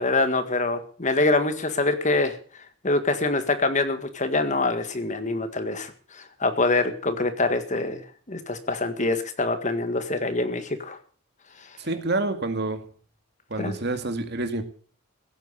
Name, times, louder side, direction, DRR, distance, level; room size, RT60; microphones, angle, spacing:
voice 1, 0.0-11.0 11.6-11.8 13.6-13.7, left 2 dB, 35° left, 9 dB, 1.8 m, -25 dB
voice 2, 11.8-12.9 13.5-14.6, right 2 dB, 55° right, 8 dB, 2.2 m, -28 dB
16.5 x 9.0 x 8.3 m, 0.43 s
head